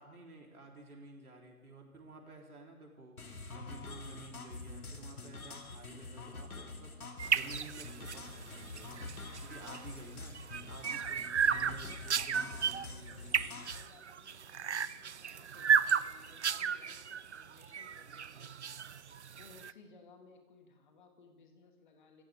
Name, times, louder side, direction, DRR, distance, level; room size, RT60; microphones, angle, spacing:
voice 1, 0.0-9.1 9.4-13.3, right 2 dB, 75° right, 0 dB, 3.8 m, -53 dB
sound 1, 3.2-13.8, left 3 dB, 75° left, 2.3 m, -46 dB
sound 2, 7.2-19.7, right 7 dB, 50° right, 0.5 m, -34 dB
voice 2, 10.9-18.5 19.4-22.2, left 4 dB, 35° left, 4 dB, 2.0 m, -61 dB
24.0 x 15.5 x 3.6 m, 1.2 s
figure-of-eight pair, 150°, 44 cm